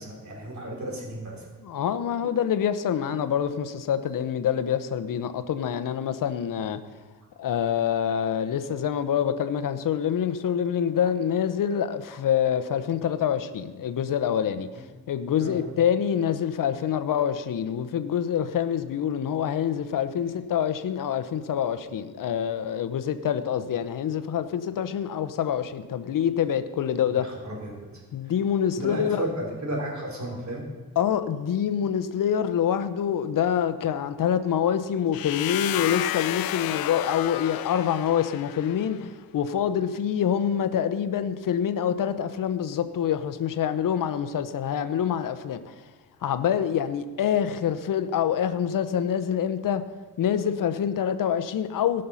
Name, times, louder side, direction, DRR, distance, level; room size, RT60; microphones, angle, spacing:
voice 1, 0.0-1.5 14.8-14.9 15.4-15.6 27.2-27.8 28.2-28.3 28.8-30.6, right 1 dB, 50° right, 3.9 m, -33 dB
voice 2, 1.6-6.8 7.4-27.3 28.1-29.2 31.0-45.8 46.2-49.8 50.2-52.0, left 9 dB, 60° left, 0.9 m, -26 dB
sound 1, 35.1-39.0, left 13 dB, 80° left, 0.5 m, -31 dB
18.0 x 6.6 x 5.7 m
cardioid pair, 115°, 36 cm